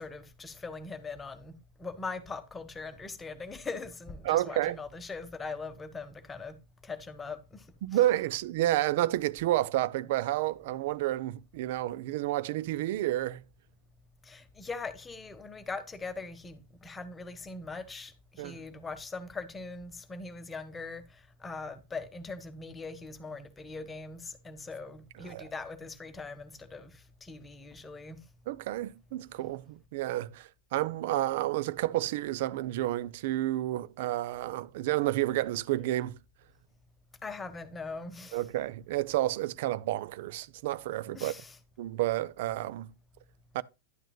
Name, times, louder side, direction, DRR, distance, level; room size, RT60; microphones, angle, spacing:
voice 1, 0.0-6.6 6.8-8.0 14.2-28.2 37.2-38.4 41.1-41.6, left 4 dB, 15° left, 1.0 m, -41 dB
voice 2, 4.3-4.8 7.8-13.4 18.4-18.6 25.3-25.4 28.5-36.2 38.3-41.3 41.8-42.9 43.5-43.6, right 15 dB, 50° right, 0.4 m, -30 dB
11.0 x 8.9 x 2.2 m
figure-of-eight pair, 90°, 0 cm